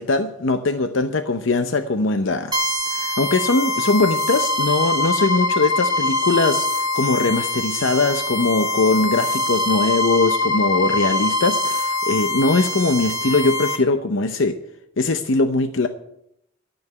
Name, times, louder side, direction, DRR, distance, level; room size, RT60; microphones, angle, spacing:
voice 1, 0.0-2.6 2.9-14.6 15.0-15.9, left 3 dB, 65° left, 9 dB, 0.7 m, -21 dB
sound 1, 2.5-13.8, left 2 dB, 20° right, 1.7 m, -23 dB
12.5 x 7.1 x 9.5 m, 0.77 s
head